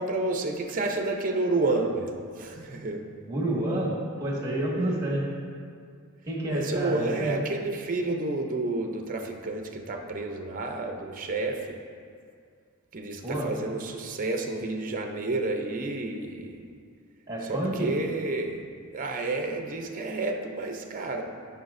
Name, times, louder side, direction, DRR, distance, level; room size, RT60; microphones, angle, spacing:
voice 1, 0.0-3.0 6.5-11.8 12.9-16.6 17.4-18.6 18.9-21.2, right 2 dB, 40° right, 3 dB, 0.6 m, -30 dB
voice 2, 3.3-3.9 4.2-5.2 6.3-7.4 13.2-13.5 17.3-17.9, right 1 dB, 15° right, -5 dB, 1.6 m, -29 dB
12.0 x 5.6 x 2.6 m, 2.2 s
head